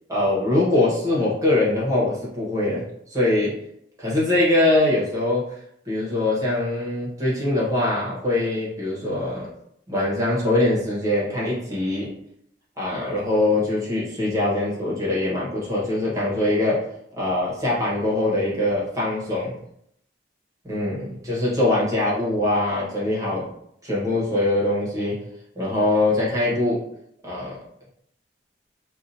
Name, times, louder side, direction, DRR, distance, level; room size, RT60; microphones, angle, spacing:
voice 1, 0.1-2.8 3.1-3.5 4.0-5.4 5.8-9.5 9.9-12.1 12.8-16.8 17.2-19.5 20.7-23.5 23.8-25.2 25.5-26.8 27.2-27.6, left 2 dB, 20° right, -6 dB, 1.2 m, -22 dB
4.6 x 2.4 x 2.7 m, 0.73 s
head